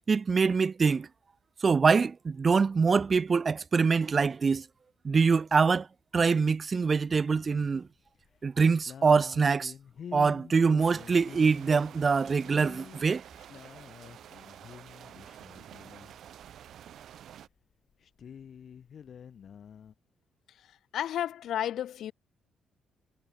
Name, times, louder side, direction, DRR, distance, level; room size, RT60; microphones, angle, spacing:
voice 1, 0.1-1.1 1.6-4.6 5.0-5.9 6.1-7.9 8.4-9.7 10.1-13.2, right 5 dB, 35° right, 0.7 m, -24 dB
sound 1, 7.1-7.8 8.1-8.4 8.7-16.2 17.0-17.1 17.4-17.5 17.7-19.9, left 8 dB, 55° left, 7.9 m, -48 dB
sound 2, 10.8-17.5, right 10 dB, 70° right, 3.2 m, -50 dB
voice 2, 20.5-22.1, left 11 dB, 70° left, 3.4 m, -33 dB
cardioid pair, 90°, 0 cm